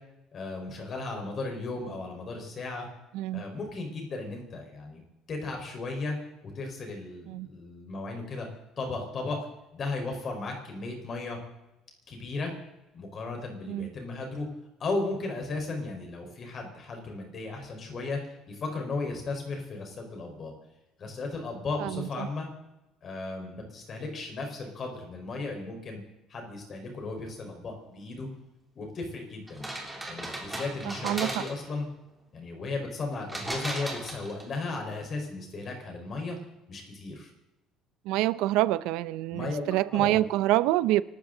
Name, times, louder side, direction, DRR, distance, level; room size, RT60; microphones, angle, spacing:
voice 1, 0.3-2.9 3.3-5.0 5.3-6.2 6.4-8.5 8.8-9.4 9.7-11.4 12.1-12.5 12.9-14.5 14.8-18.2 18.5-20.5 21.0-22.5 23.0-26.0 26.3-28.3 28.7-29.7 30.1-31.9 32.3-36.4 36.7-37.3 39.3-39.6 39.9-40.2, left 3 dB, 30° left, 4.4 m, -35 dB
voice 2, 21.8-22.3 30.8-31.3 38.1-41.0, right 15 dB, 85° right, 0.5 m, -26 dB
sound 1, 29.5-31.8 33.3-34.6, right 1 dB, 5° right, 2.9 m, -36 dB
26.5 x 13.0 x 3.9 m
cardioid pair, 165°, 0 cm